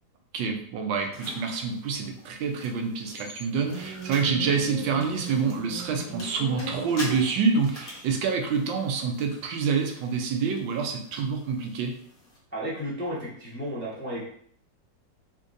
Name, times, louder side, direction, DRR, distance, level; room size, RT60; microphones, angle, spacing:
voice 1, 0.3-11.9, right 5 dB, 85° right, 3 dB, 1.3 m, -27 dB
sound 1, 1.1-12.4, left 1 dB, 35° left, 0.9 m, -46 dB
Motorcycle, 3.5-7.8, right 1 dB, 25° right, 0.6 m, -39 dB
voice 2, 12.5-14.2, equal, 10° left, -7 dB, 0.5 m, -33 dB
3.9 x 2.6 x 2.5 m, 0.63 s
omnidirectional pair, 2.0 m